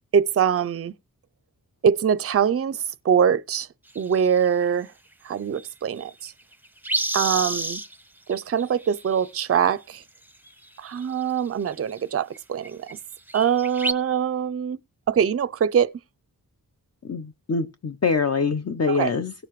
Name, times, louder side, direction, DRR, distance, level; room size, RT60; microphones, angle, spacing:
voice 1, 0.1-0.9 1.8-3.7 4.0-4.9 5.2-6.3 7.1-7.8 8.3-10.0 10.8-13.0 13.3-14.8 15.1-15.9 18.9-19.1, right 7 dB, 40° right, 0.5 m, -23 dB
sound 1, 4.0-4.5 5.6-5.7 6.0-6.1 6.3-8.0 8.3-9.4 10.5-10.7 11.0-12.0 12.4-12.5 12.6-13.0 13.3-13.9, right 1 dB, 5° right, 0.7 m, -30 dB
voice 2, 17.0-19.3, left 4 dB, 45° left, 0.8 m, -24 dB
17.0 x 6.6 x 3.1 m
wide cardioid pair, 115°, 36 cm